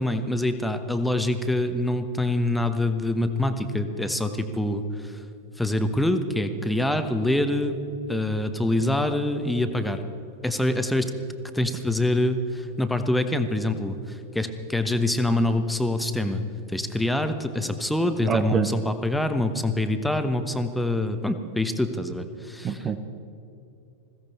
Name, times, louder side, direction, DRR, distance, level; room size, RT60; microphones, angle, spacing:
voice 1, 0.0-5.2 5.6-7.8 8.1-10.0 10.4-11.1 11.5-16.4 16.7-22.9, left 1 dB, 5° left, 8 dB, 1.1 m, -25 dB
voice 2, 18.3-18.7 22.6-23.0, right 6 dB, 25° right, 9 dB, 0.8 m, -25 dB
21.0 x 16.0 x 4.3 m, 2.8 s
figure-of-eight pair, 90°, 0 cm